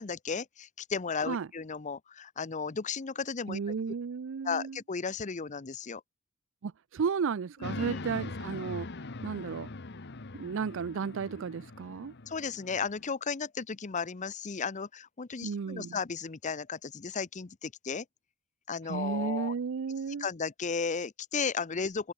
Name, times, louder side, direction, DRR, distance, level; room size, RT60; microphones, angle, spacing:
voice 1, 0.0-3.6 4.4-6.0 7.6-8.0 12.3-18.0 18.7-19.5 20.2-22.1, left 5 dB, 35° left, 0.7 m, -34 dB
voice 2, 3.5-4.8 6.6-8.9 9.2-9.7 10.3-12.1 15.4-16.0 18.9-20.3, right 5 dB, 65° right, 0.4 m, -33 dB
sound 1, 7.6-13.1, left 3 dB, 55° left, 1.1 m, -42 dB
head